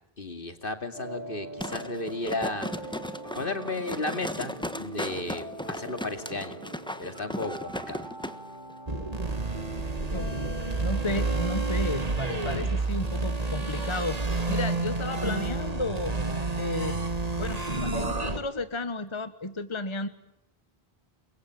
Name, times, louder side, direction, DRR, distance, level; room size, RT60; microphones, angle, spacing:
voice 1, 0.2-2.7 3.4-6.6 7.0-8.1, left 2 dB, 60° left, 8 dB, 2.6 m, -34 dB
sound 1, 0.9-11.8, right 2 dB, 55° right, 3.0 m, -42 dB
sound 2, 1.6-8.4 8.7-8.8, equal, 5° left, 1.3 m, -36 dB
sound 3, 8.9-18.4, right 3 dB, 40° right, 2.1 m, -29 dB
voice 2, 10.8-14.2 14.5-16.1 16.5-17.0 17.4-20.1, left 2 dB, 30° left, 11 dB, 1.3 m, -33 dB
29.0 x 22.5 x 9.1 m, 0.81 s
omnidirectional pair, 1.0 m